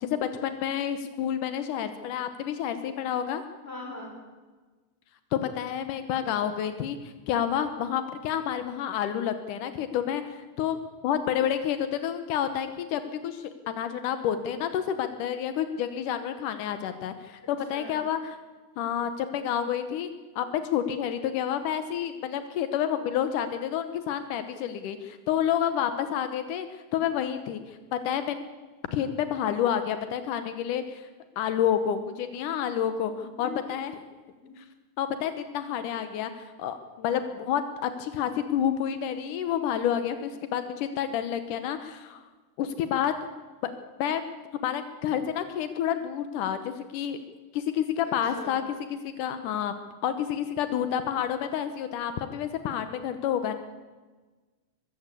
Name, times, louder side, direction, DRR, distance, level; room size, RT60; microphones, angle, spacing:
voice 1, 0.0-3.4 5.3-10.8 11.0-18.4 18.8-28.4 28.9-31.1 31.4-33.9 34.6-34.7 35.0-42.2 42.6-43.2 43.6-43.7 44.0-44.3 44.6-47.2 47.5-48.6 48.9-49.7 50.0-53.6, left 9 dB, 85° left, 10 dB, 2.6 m, -29 dB
voice 2, 3.6-4.1 17.7-18.0 33.4-33.6 34.4-34.5 48.2-48.6, left 2 dB, 20° left, -1 dB, 6.5 m, -40 dB
22.5 x 14.5 x 8.4 m, 1.3 s
omnidirectional pair, 3.6 m